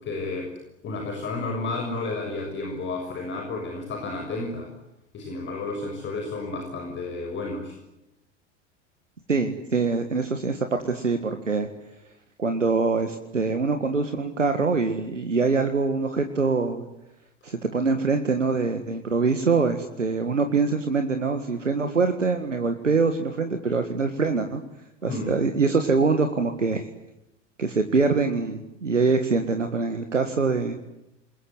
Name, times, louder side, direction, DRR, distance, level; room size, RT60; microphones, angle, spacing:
voice 1, 0.0-0.5 0.8-4.7 5.1-7.8 25.1-25.4, left 3 dB, 30° left, 3 dB, 6.5 m, -31 dB
voice 2, 9.3-11.7 12.4-16.8 17.4-24.6 25.0-26.9 27.6-30.7, right 4 dB, 85° right, 7 dB, 1.9 m, -24 dB
28.5 x 21.5 x 9.7 m, 0.90 s
figure-of-eight pair, 80°, 37 cm